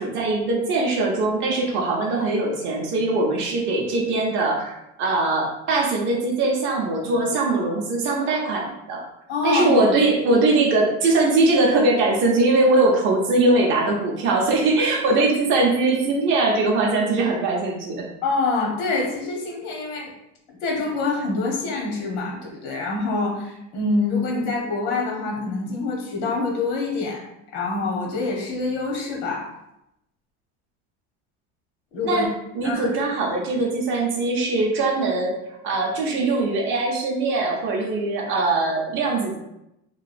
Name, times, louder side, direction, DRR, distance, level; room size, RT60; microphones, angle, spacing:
voice 1, 0.0-9.0 9.4-18.1 32.0-32.3 32.5-35.4 35.6-39.4, right 2 dB, 35° right, 0 dB, 0.4 m, -21 dB
voice 2, 9.3-9.8 18.2-20.1 20.6-27.2 27.5-29.5 31.9-32.3 32.6-32.9, left 3 dB, 90° left, -1 dB, 0.8 m, -25 dB
2.9 x 2.3 x 2.4 m, 0.85 s
cardioid pair, 170°, 34 cm